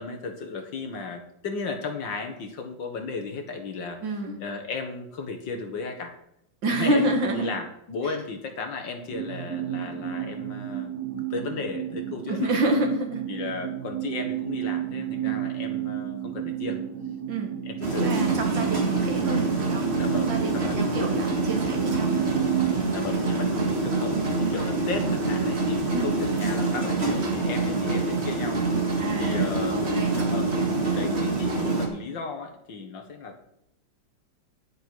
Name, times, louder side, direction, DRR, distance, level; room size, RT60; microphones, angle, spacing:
voice 1, 0.0-4.0 4.4-6.1 6.7-10.9 11.2-12.5 13.3-16.8 17.7-18.1 20.0-21.2 22.9-29.8 30.1-30.6 30.8-33.4, left 4 dB, 70° left, 4 dB, 2.2 m, -35 dB
voice 2, 4.0-4.4 6.6-7.5 8.1-8.2 12.3-13.2 15.2-15.4 17.3-17.5 17.9-19.9 20.2-22.3 23.1-23.2 25.9-26.1 29.0-30.1 31.1-31.2, right 1 dB, 70° right, 3 dB, 2.6 m, -28 dB
sound 1, 9.1-22.8, right 12 dB, 55° right, 1.3 m, -32 dB
sound 2, 17.8-31.9, right 3 dB, 35° right, 2.0 m, -26 dB
10.5 x 9.1 x 4.8 m, 0.76 s
omnidirectional pair, 2.1 m